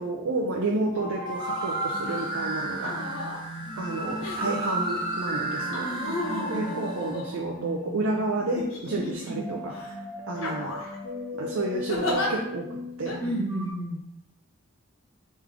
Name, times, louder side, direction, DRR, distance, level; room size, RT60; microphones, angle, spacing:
voice 1, 0.0-2.9 3.8-5.9 6.5-9.7 10.3-10.8 11.4-13.2, right 2 dB, 70° right, -2 dB, 0.5 m, -30 dB
voice 2, 0.7-1.1 5.3-6.8 8.9-9.5 13.2-14.0, right 1 dB, 5° left, -5 dB, 0.9 m, -34 dB
sound 1, 0.9-13.7, left 1 dB, 50° left, 0.9 m, -37 dB
sound 2, 1.3-7.1, right 3 dB, 20° right, 0.4 m, -34 dB
sound 3, 2.0-2.3 2.7-3.4 4.2-4.7 5.7-7.8 8.6-9.3 9.7-9.9 10.4-11.0 11.9-12.3 13.1-13.2, left 2 dB, 70° left, 0.9 m, -34 dB
3.7 x 3.2 x 3.3 m, 0.80 s
head